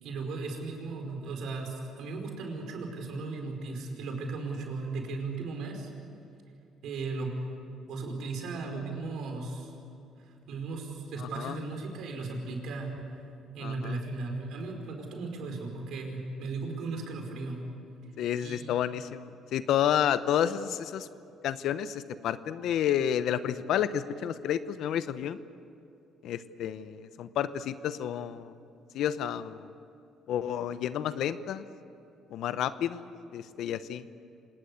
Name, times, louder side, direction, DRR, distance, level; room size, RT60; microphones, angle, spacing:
voice 1, 0.0-5.9 6.8-7.3 7.9-9.7 10.5-13.0 13.5-17.6 18.4-18.7, right 3 dB, 70° right, 2 dB, 5.1 m, -36 dB
voice 2, 11.2-11.6 13.6-14.0 18.2-21.1 21.4-25.4 26.2-28.5 28.9-29.7 30.3-31.6 32.3-34.1, left 10 dB, 70° left, 13 dB, 0.9 m, -30 dB
26.5 x 19.5 x 8.4 m, 2.6 s
cardioid pair, 85°, 0 cm